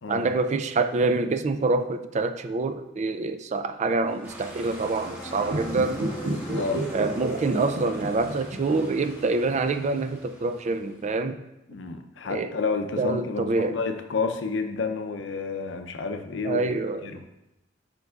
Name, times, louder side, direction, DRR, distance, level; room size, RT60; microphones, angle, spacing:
voice 1, 0.1-6.1 6.9-11.4 12.3-12.5 13.0-13.8 16.4-17.1, right 3 dB, 40° right, 0.4 m, -26 dB
sound 1, 4.0-9.3, right 1 dB, 10° left, 2.0 m, -46 dB
sound 2, 4.2-11.1, equal, 10° right, 1.6 m, -44 dB
sound 3, 5.4-8.8 9.1-9.2, right 1 dB, 60° right, 0.7 m, -30 dB
voice 2, 6.5-6.8 11.7-16.6 17.0-17.2, left 4 dB, 85° left, 0.6 m, -30 dB
9.4 x 5.3 x 2.4 m
head